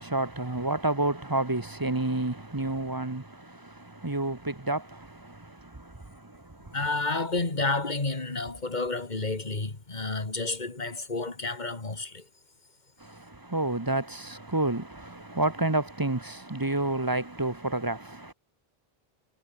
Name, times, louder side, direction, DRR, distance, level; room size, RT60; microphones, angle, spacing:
voice 1, 0.0-6.7 13.0-18.3, right 2 dB, 20° right, 1.4 m, -30 dB
voice 2, 6.7-12.3, left 3 dB, 45° left, 2.7 m, -30 dB
omnidirectional pair, 1.0 m